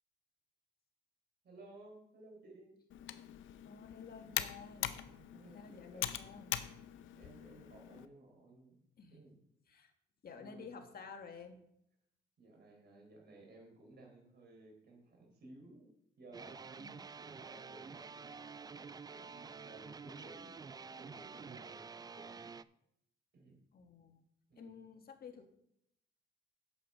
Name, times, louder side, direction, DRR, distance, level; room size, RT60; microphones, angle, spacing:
voice 1, 1.4-2.7 5.0-6.6 7.2-8.8 9.1-9.4 10.3-10.9 12.4-15.9 16.2-16.8 17.1-22.5 23.3-23.6 24.5-24.8, right 2 dB, 55° right, 1 dB, 4.0 m, -57 dB
Computer keyboard, 2.9-8.1, left 12 dB, 75° left, 0.6 m, -42 dB
voice 2, 3.6-4.9 5.5-6.5 9.0-9.2 9.7-9.9 10.2-11.6 16.8-17.1 23.7-24.2 24.6-25.5, left 5 dB, 50° left, 5 dB, 1.6 m, -52 dB
sound 1, 16.3-22.6, right 5 dB, 20° right, 0.3 m, -49 dB
9.0 x 7.1 x 5.0 m, 0.76 s
cardioid pair, 90°, 20 cm